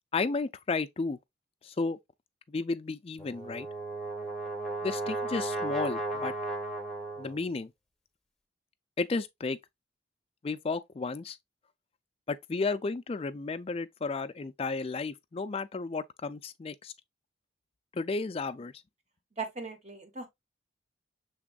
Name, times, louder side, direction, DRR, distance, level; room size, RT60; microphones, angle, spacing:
voice 1, 0.1-1.2 1.6-2.0 2.5-3.7 4.8-6.3 7.2-7.7 9.0-9.6 10.4-11.4 12.3-16.9 17.9-18.7, left 4 dB, 30° left, 0.3 m, -33 dB
Brass instrument, 3.2-7.5, right 2 dB, ahead, 0.8 m, -35 dB
voice 2, 19.4-20.3, right 4 dB, 35° right, 1.0 m, -38 dB
6.0 x 3.5 x 2.3 m
head